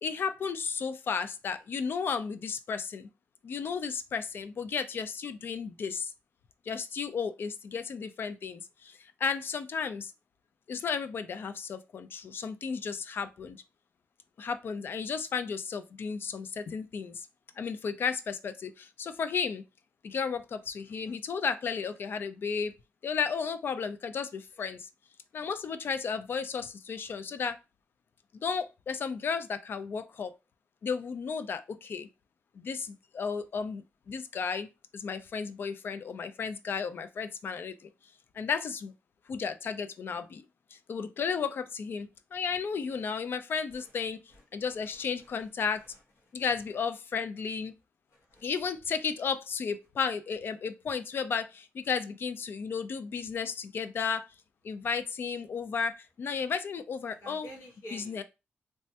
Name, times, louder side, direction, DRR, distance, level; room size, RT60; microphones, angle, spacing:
voice 1, 0.0-3.1 3.4-6.1 6.7-10.1 10.7-13.6 14.4-17.3 17.6-19.6 20.0-22.7 23.0-24.9 25.3-27.6 28.4-30.3 30.8-32.1 32.6-37.9 38.3-38.9 39.3-40.4 40.7-44.2 44.5-45.8 46.3-47.7 48.4-54.3 54.6-57.5 57.9-58.2, left 6 dB, 55° left, 0.3 m, -33 dB
voice 2, 43.7-44.0 44.3-46.3 48.1-48.4 57.1-58.2, equal, 70° left, 1.0 m, -52 dB
3.2 x 2.1 x 2.7 m
wide cardioid pair, 150°, 5 cm